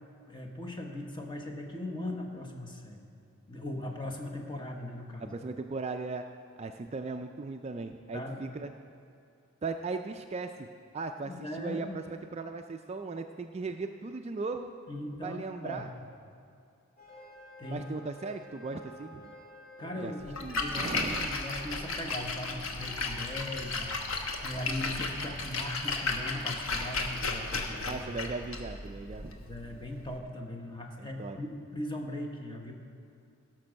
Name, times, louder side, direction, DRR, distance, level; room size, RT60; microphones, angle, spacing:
voice 1, 0.3-3.0 3.5-5.3 8.1-8.5 11.2-12.0 14.9-15.9 17.6-17.8 19.8-23.9 24.4-28.0 29.3-32.7, left 1 dB, 20° left, 2 dB, 1.1 m, -39 dB
voice 2, 5.2-6.2 6.6-8.7 9.6-10.7 10.9-14.7 15.2-15.9 17.7-19.3 20.0-20.1 20.4-21.3 27.8-29.4 31.0-31.4, right 3 dB, 30° right, 6 dB, 0.3 m, -37 dB
sound 1, 17.0-23.2, left 1 dB, 40° left, 2.1 m, -51 dB
Splash splatter, 20.2-30.2, left 3 dB, 75° left, 1.1 m, -34 dB
16.5 x 6.0 x 6.4 m, 2.4 s
head